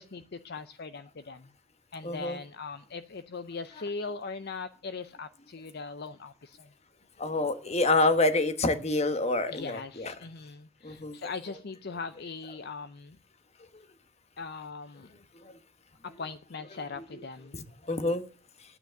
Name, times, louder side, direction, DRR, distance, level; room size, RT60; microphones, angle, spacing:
voice 1, 0.0-1.5 1.9-6.7 9.5-13.2 14.4-15.1 16.0-17.6, left 4 dB, 50° left, 0.6 m, -40 dB
voice 2, 2.0-2.4 7.2-10.1 10.8-11.2 13.7-13.8 15.4-15.5 17.5-18.2, left 2 dB, 30° left, 1.2 m, -27 dB
12.0 x 9.3 x 6.4 m
head